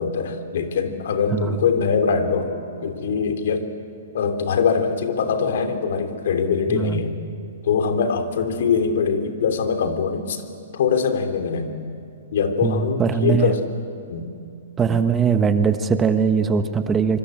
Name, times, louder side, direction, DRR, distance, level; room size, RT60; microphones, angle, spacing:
voice 1, 0.0-2.5 2.8-3.7 4.1-7.2 7.6-10.4 10.7-11.8 12.3-13.6 14.1-14.3, left 6 dB, 65° left, 7 dB, 3.1 m, -22 dB
voice 2, 6.7-7.0 12.6-13.5 14.8-17.2, right 6 dB, 15° right, 9 dB, 1.3 m, -20 dB
25.5 x 24.0 x 9.0 m, 2.4 s
hypercardioid pair, 130°, 0 cm